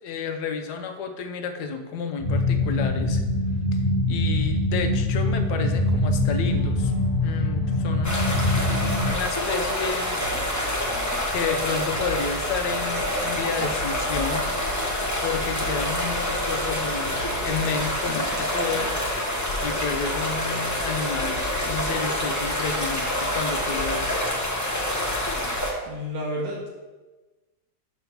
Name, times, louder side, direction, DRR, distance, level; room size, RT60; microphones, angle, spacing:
voice 1, 0.0-3.2 4.1-6.9 7.2-8.4 9.1-10.2 11.3-14.5 15.2-18.9 19.6-24.2, left 5 dB, 70° left, 6 dB, 1.2 m, -31 dB
sound 1, 2.2-9.1, left 2 dB, 45° left, 0.9 m, -23 dB
sound 2, 6.5-18.6, right 2 dB, 35° right, 1.8 m, -43 dB
sound 3, 8.0-25.7, left 1 dB, 15° left, 0.7 m, -27 dB
voice 2, 25.9-26.7, equal, 85° right, -3 dB, 2.4 m, -30 dB
5.6 x 4.8 x 5.7 m, 1.2 s
omnidirectional pair, 1.9 m